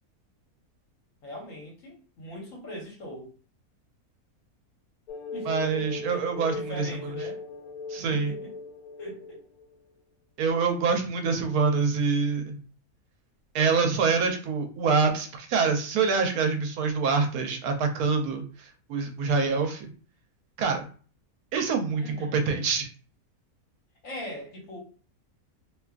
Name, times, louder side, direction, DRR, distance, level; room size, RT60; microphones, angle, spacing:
voice 1, 1.2-3.3 5.3-6.2 6.5-7.4 8.0-8.5 9.0-9.4 22.0-22.5 24.0-24.8, equal, 65° left, -2 dB, 1.3 m, -41 dB
sound 1, 5.1-9.7, left 4 dB, 85° left, 1.1 m, -38 dB
voice 2, 5.5-6.9 7.9-8.3 10.4-12.6 13.5-19.9 20.6-20.9 21.5-22.9, right 5 dB, 85° right, 5 dB, 1.1 m, -26 dB
2.8 x 2.3 x 2.4 m, 0.39 s
omnidirectional pair, 1.5 m